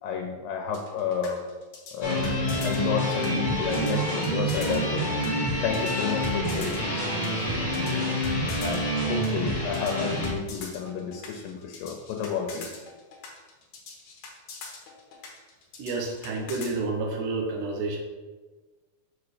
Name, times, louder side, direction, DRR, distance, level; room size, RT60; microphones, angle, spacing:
voice 1, 0.0-1.4 1.9-2.3 2.6-5.1 5.6-7.9 8.6-12.7, left 6 dB, 85° left, 3 dB, 2.3 m, -31 dB
sound 1, 0.7-16.7, left 4 dB, 60° left, 1.9 m, -43 dB
sound 2, 2.0-10.3, equal, 30° left, 0.7 m, -27 dB
voice 2, 15.8-18.0, right 3 dB, 75° right, 2 dB, 2.2 m, -29 dB
6.5 x 3.9 x 4.9 m, 1.3 s
omnidirectional pair, 4.0 m